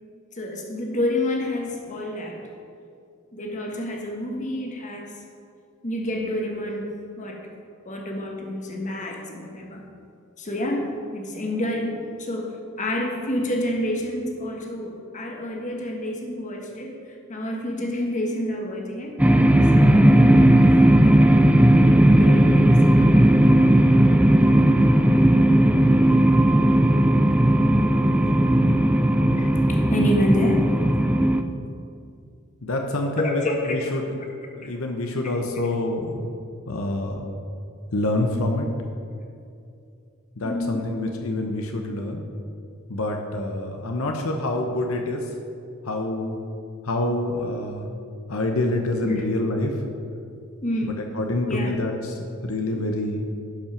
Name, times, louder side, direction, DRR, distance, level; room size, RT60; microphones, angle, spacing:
voice 1, 0.3-2.5 3.3-5.1 5.8-7.4 7.8-9.9 10.4-19.2 19.7-20.5 21.0-21.3 22.0-23.0 29.3-30.7 33.2-33.9 34.2-34.7 35.2-35.5 37.2-37.4 40.4-40.8 49.0-49.3 50.6-51.0 51.5-51.9 52.7-52.8, left 1 dB, 35° left, 1 dB, 1.5 m, -29 dB
sound 1, 19.2-31.4, right 1 dB, 5° right, 0.4 m, -16 dB
voice 2, 32.6-33.4 33.7-36.3 36.7-37.2 37.9-38.7 40.4-42.2 42.9-45.2 45.9-46.4 46.8-47.9 48.3-49.7 51.2-51.9 52.4-53.2, left 2 dB, 80° left, 3 dB, 0.9 m, -26 dB
12.0 x 5.7 x 5.9 m, 2.5 s
head